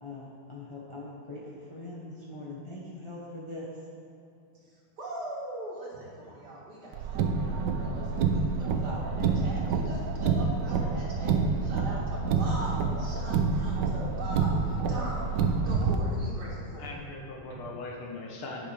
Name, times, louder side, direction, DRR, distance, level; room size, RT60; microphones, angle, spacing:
voice 1, 0.0-3.7, left 2 dB, 25° left, -7 dB, 0.6 m, -42 dB
voice 2, 4.6-15.3 15.6-16.9, right 1 dB, 50° right, -5 dB, 2.3 m, -41 dB
Car, 6.9-16.0, right 5 dB, 70° right, 1.1 m, -28 dB
voice 3, 16.8-18.7, left 2 dB, 75° left, 0 dB, 2.1 m, -40 dB
10.0 x 6.1 x 5.0 m, 2.6 s
omnidirectional pair, 2.4 m